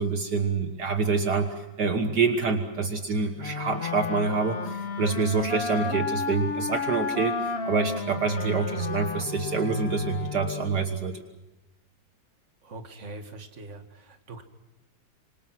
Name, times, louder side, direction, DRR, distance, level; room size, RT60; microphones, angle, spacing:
voice 1, 0.0-7.3 7.7-11.2, right 4 dB, 60° right, 6 dB, 2.0 m, -26 dB
Wind instrument woodwind instrument, 3.4-10.9, left 4 dB, 35° left, 1.4 m, -32 dB
voice 2, 12.6-14.4, right 2 dB, 40° right, 6 dB, 2.3 m, -42 dB
26.5 x 26.0 x 6.1 m, 1.0 s
omnidirectional pair, 2.1 m